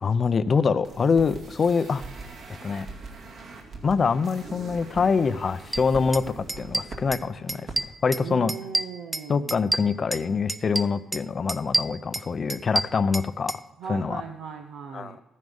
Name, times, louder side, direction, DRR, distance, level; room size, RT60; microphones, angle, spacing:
voice 1, 0.0-2.0 2.6-2.9 3.8-7.7 8.0-8.5 9.3-13.6 13.9-14.2 14.9-15.2, left 5 dB, 40° left, 14 dB, 0.6 m, -24 dB
sound 1, 0.8-7.2 7.5-7.7 8.0-8.1, right 3 dB, 60° right, 2.2 m, -41 dB
sound 2, 5.7-5.8 6.1-6.2 6.5-7.2 7.5-8.2 8.5-10.2 10.5-11.2 11.5-13.6, right 2 dB, 15° right, 0.3 m, -28 dB
voice 2, 8.2-9.6 13.8-15.2, right 6 dB, 85° right, 4 dB, 0.8 m, -38 dB
13.0 x 9.5 x 5.3 m, 1.0 s
cardioid pair, 90°, 0 cm